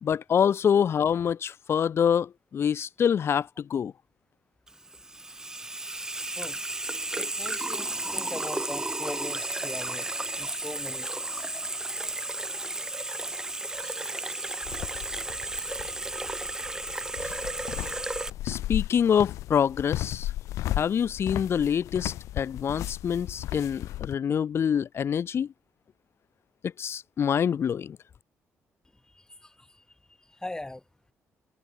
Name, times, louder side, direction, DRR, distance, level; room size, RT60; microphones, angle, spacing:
voice 1, 0.0-3.9 18.4-20.3 20.8-25.5 26.6-28.0, left 8 dB, 55° left, 1.2 m, -26 dB
Water tap faucet / Sink (filling or washing), 4.7-18.3, right 2 dB, 10° right, 0.4 m, -33 dB
voice 2, 7.1-10.1 10.4-11.4 13.8-14.7 15.0-15.1 15.4-15.9 16.5-16.6 29.1-29.8 30.3-30.8, left 2 dB, 10° left, 1.2 m, -42 dB
sound 1, 14.6-24.1, left 15 dB, 90° left, 1.1 m, -35 dB
cardioid pair, 85°, 5 cm